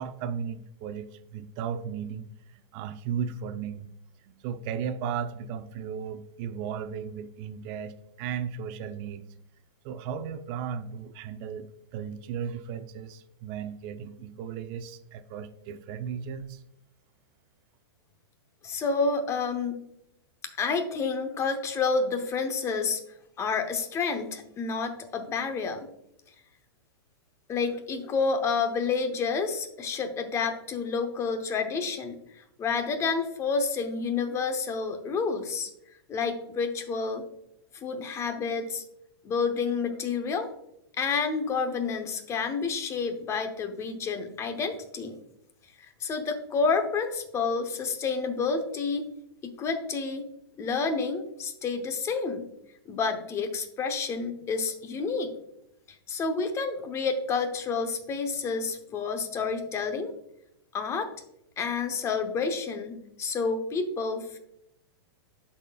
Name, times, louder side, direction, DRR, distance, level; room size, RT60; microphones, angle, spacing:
voice 1, 0.0-3.9 4.2-9.2 9.8-16.6, right 7 dB, 35° right, 10 dB, 0.5 m, -35 dB
voice 2, 18.6-19.8 20.6-23.0 23.4-25.9 27.5-35.7 36.1-37.2 37.7-38.8 39.2-40.5 41.0-45.2 46.0-49.1 49.4-50.3 50.6-52.4 52.9-55.3 56.1-60.1 60.7-61.1 61.6-64.4, left 4 dB, 20° left, 6 dB, 0.8 m, -29 dB
12.5 x 4.2 x 2.3 m, 0.81 s
hypercardioid pair, 140°, 14 cm